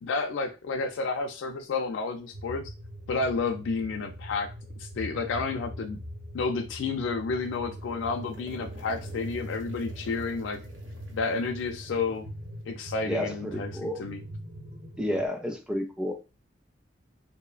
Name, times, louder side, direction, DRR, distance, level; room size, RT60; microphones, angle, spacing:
voice 1, 0.0-2.6 3.1-4.5 4.8-6.0 6.3-10.6 11.1-12.3 12.7-14.2, left 4 dB, 80° left, 3 dB, 0.3 m, -31 dB
sound 1, 2.3-15.3, equal, 50° right, 0.7 m, -42 dB
sound 2, 6.9-12.8, equal, 85° right, 0.6 m, -51 dB
voice 2, 13.1-14.0 15.0-16.1, equal, 5° right, 4 dB, 0.4 m, -31 dB
2.9 x 2.0 x 2.3 m, 0.30 s
head